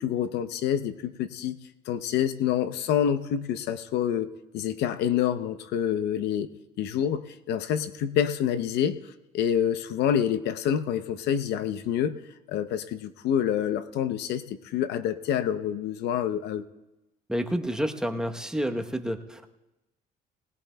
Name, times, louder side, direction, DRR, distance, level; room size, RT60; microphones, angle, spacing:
voice 1, 0.0-1.6 1.9-6.5 6.8-9.0 9.3-12.2 12.5-16.7, left 9 dB, 80° left, 12 dB, 0.7 m, -27 dB
voice 2, 17.3-19.5, equal, 5° right, 5 dB, 0.9 m, -29 dB
19.5 x 19.0 x 2.2 m, 0.98 s
cardioid pair, 110°, 17 cm